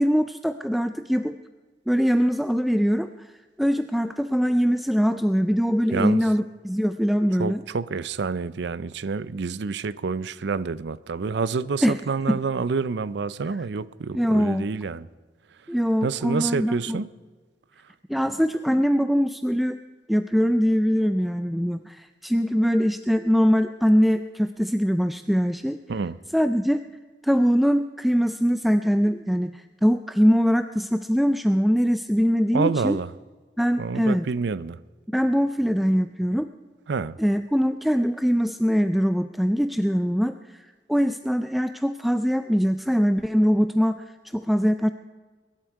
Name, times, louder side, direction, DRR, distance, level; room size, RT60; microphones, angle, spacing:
voice 1, 0.0-1.4 1.9-3.1 3.6-7.6 11.8-12.0 12.3-12.4 14.1-14.7 15.7-17.0 18.1-19.8 20.1-25.8 26.3-26.8 27.2-33.0 33.6-34.3 35.1-36.5 37.2-40.6 40.9-44.0 44.3-44.9, equal, ahead, 0.3 m, -22 dB
voice 2, 5.9-6.3 7.4-15.1 16.0-17.1 25.9-26.2 32.5-33.1 33.8-34.8 36.9-37.2, right 4 dB, 70° right, 0.5 m, -28 dB
22.5 x 11.5 x 4.7 m
head